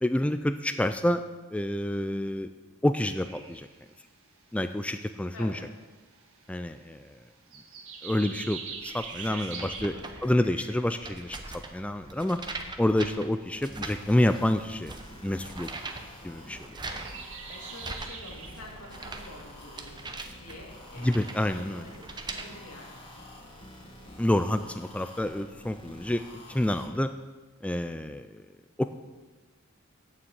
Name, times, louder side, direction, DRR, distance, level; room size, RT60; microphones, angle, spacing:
voice 1, 0.0-1.2 1.5-2.5 2.8-3.7 4.5-5.6 6.5-7.2 8.0-9.9 10.2-12.4 12.8-14.9 15.2-15.7 16.2-16.7 21.0-21.8 24.2-26.2 26.5-27.1 27.6-28.4 28.8-28.9, left 1 dB, 5° left, 9 dB, 0.3 m, -28 dB
sound 1, 2.9-14.9 15.2-19.6 19.9-20.2, right 5 dB, 65° right, 1.7 m, -45 dB
voice 2, 5.3-5.7 9.2-10.0 17.5-22.0 22.3-23.0, left 1 dB, 85° left, -1 dB, 2.7 m, -47 dB
sound 2, 8.7-22.4, right 3 dB, 20° right, 0.8 m, -42 dB
sound 3, 13.9-26.9, left 1 dB, 25° left, 1.7 m, -49 dB
8.8 x 7.3 x 8.1 m, 1.3 s
head